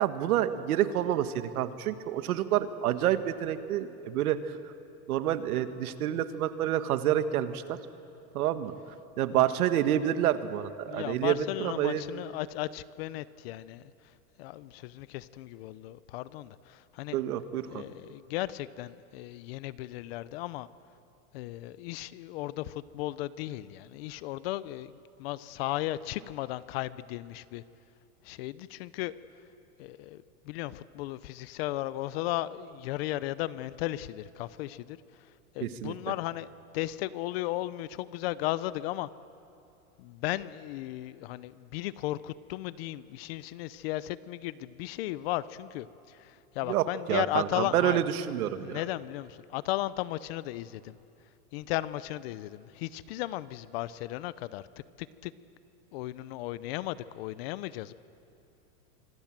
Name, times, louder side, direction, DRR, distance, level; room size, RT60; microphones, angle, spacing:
voice 1, 0.0-4.5 5.1-7.8 8.3-8.7 9.2-12.0 17.1-17.8 35.6-35.9 46.7-48.8, right 11 dB, 75° right, 10 dB, 1.6 m, -28 dB
voice 2, 10.9-13.8 14.4-17.2 17.7-20.7 21.3-27.6 28.2-29.1 29.8-35.0 35.5-36.5 36.7-39.1 40.0-48.0 48.6-51.0 51.5-54.6 55.0-55.3 55.9-57.9, left 16 dB, 45° left, 17 dB, 0.7 m, -35 dB
26.0 x 21.0 x 7.5 m, 2.7 s
supercardioid pair, 155°, 44 cm